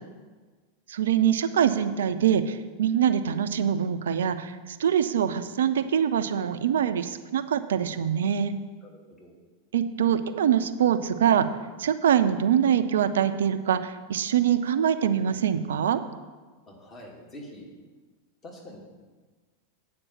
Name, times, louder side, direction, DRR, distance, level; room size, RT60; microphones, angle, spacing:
voice 1, 0.9-8.6 9.7-11.5 11.8-16.0, right 9 dB, 60° right, 11 dB, 0.5 m, -24 dB
voice 2, 8.8-9.4 16.7-17.7 18.4-18.8, left 1 dB, 25° left, -2 dB, 2.5 m, -45 dB
8.3 x 5.2 x 7.1 m, 1.4 s
figure-of-eight pair, 90°, 0 cm